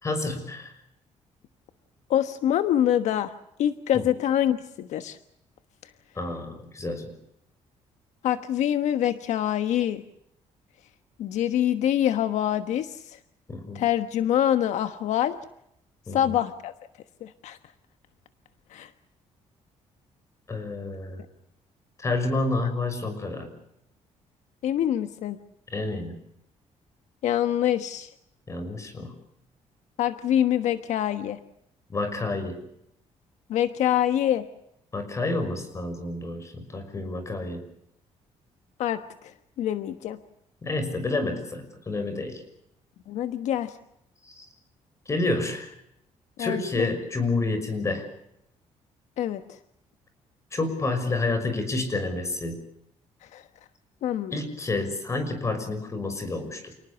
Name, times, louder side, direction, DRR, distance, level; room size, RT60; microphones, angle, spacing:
voice 1, 0.0-0.7 3.9-4.1 6.2-7.1 13.5-13.8 16.1-16.4 20.5-21.2 22.0-23.5 25.7-26.2 28.5-29.1 31.9-32.5 34.9-37.6 40.6-42.4 44.2-44.5 45.1-45.7 46.4-48.0 50.5-52.6 54.3-56.7, left 2 dB, 25° left, 9 dB, 6.1 m, -29 dB
voice 2, 2.1-3.3 3.6-5.2 8.2-10.0 11.2-13.2 13.7-15.4 16.1-16.7 17.2-17.6 18.7-18.9 24.6-25.4 27.2-28.1 30.0-31.4 33.5-34.4 38.8-39.0 39.6-40.2 43.1-43.7 46.4-46.9 49.2-49.4 53.3-53.4 54.0-54.4, left 11 dB, 75° left, 10 dB, 1.3 m, -25 dB
28.5 x 19.0 x 7.0 m, 0.77 s
cardioid pair, 140°, 12 cm